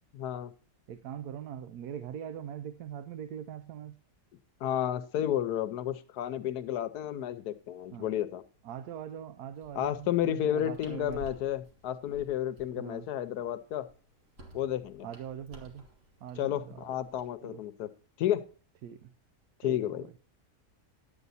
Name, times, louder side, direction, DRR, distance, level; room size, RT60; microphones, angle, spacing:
voice 1, 0.1-0.5 4.6-8.4 9.7-13.9 14.5-15.1 16.4-17.9 18.2-18.4 19.6-20.1, left 11 dB, 85° left, 1.2 m, -31 dB
voice 2, 0.9-4.0 7.9-8.1 8.6-11.2 12.7-13.1 15.0-15.8 16.2-16.8 17.4-17.6 18.8-19.1 19.7-20.1, right 9 dB, 80° right, 1.1 m, -42 dB
sound 1, 9.6-17.2, left 1 dB, 40° right, 1.9 m, -54 dB
10.5 x 8.2 x 4.0 m
omnidirectional pair, 1.6 m